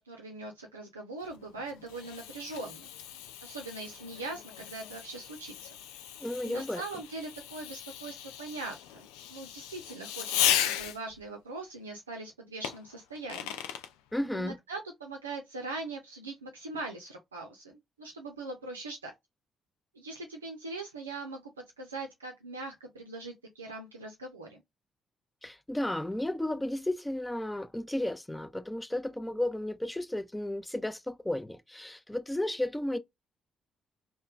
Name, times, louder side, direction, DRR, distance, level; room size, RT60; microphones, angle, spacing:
voice 1, 0.1-2.9 3.4-5.7 6.4-13.6 14.3-19.1 19.9-21.4 21.8-24.6, right 3 dB, 85° right, 0.4 m, -41 dB
Fireworks, 1.3-11.2 12.6-13.9, left 11 dB, 70° left, 0.3 m, -36 dB
voice 2, 6.2-6.8 14.1-14.6 25.4-33.0, left 1 dB, 10° left, 0.5 m, -33 dB
3.0 x 2.1 x 2.3 m
figure-of-eight pair, 40°, 0 cm